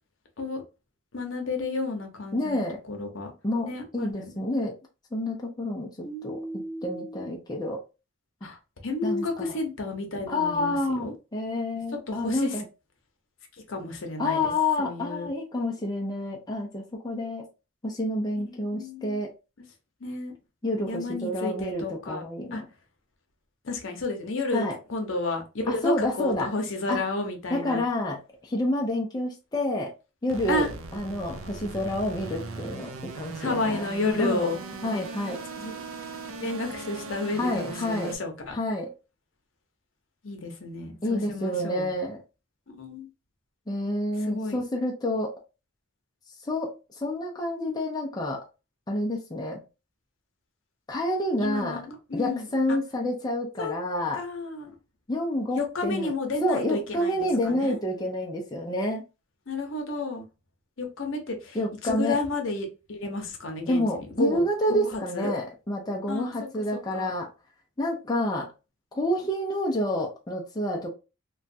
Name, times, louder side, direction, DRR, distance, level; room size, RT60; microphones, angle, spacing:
voice 1, 1.1-3.3 3.6-4.3 6.0-7.3 8.4-8.6 8.8-11.1 12.1-12.5 13.7-14.5 14.8-15.3 18.5-19.2 20.0-20.3 20.9-22.2 22.5-22.6 23.6-27.8 30.5-30.7 33.4-34.6 34.9-35.0 35.6-35.7 36.4-38.6 40.2-41.9 42.7-43.1 44.3-44.6 51.4-52.5 53.6-53.7 54.1-54.7 55.5-57.8 59.5-60.3 60.8-65.3 66.1-66.3 66.7-67.1, left 3 dB, 65° left, 0.8 m, -32 dB
voice 2, 2.3-2.8 3.4-4.7 5.1-5.9 6.2-7.8 8.4-8.5 9.0-9.6 10.3-12.7 14.2-17.4 17.8-19.3 20.6-22.7 24.5-24.8 25.7-26.5 26.9-27.0 27.5-29.9 30.2-33.9 34.2-34.5 34.8-35.4 37.3-38.2 38.5-38.9 41.0-42.2 43.7-45.3 46.4-48.4 48.9-49.6 50.9-51.8 52.1-54.2 55.1-56.1 56.4-59.0 61.5-62.2 63.7-67.3 67.8-68.5 68.9-70.9, left 1 dB, 20° left, 0.5 m, -28 dB
sound 1, 30.3-38.2, right 3 dB, 75° right, 0.5 m, -38 dB
3.0 x 2.3 x 2.6 m
head